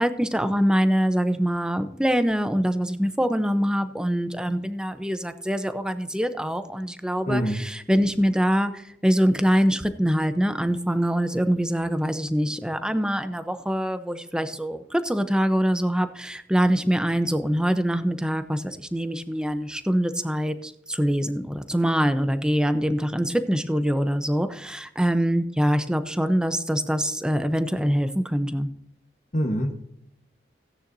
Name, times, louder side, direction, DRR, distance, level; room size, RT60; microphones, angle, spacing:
voice 1, 0.0-28.7, equal, 5° right, 10 dB, 0.6 m, -24 dB
voice 2, 7.3-7.6 29.3-29.7, equal, 40° left, 5 dB, 1.1 m, -24 dB
16.0 x 9.7 x 2.7 m, 0.73 s
head